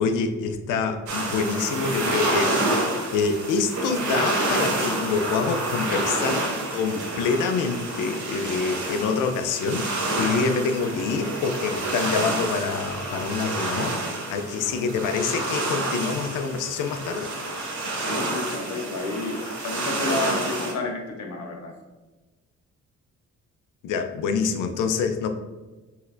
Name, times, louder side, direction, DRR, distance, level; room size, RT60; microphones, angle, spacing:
voice 1, 0.0-2.5 2.8-17.3 23.8-25.3, left 5 dB, 90° left, 7 dB, 0.6 m, -26 dB
sound 1, 1.1-20.7, right 2 dB, 75° right, 1.3 m, -28 dB
voice 2, 18.0-21.7, left 3 dB, 65° left, 1 dB, 1.1 m, -30 dB
5.7 x 3.2 x 2.5 m, 1.2 s
cardioid pair, 90°, 30 cm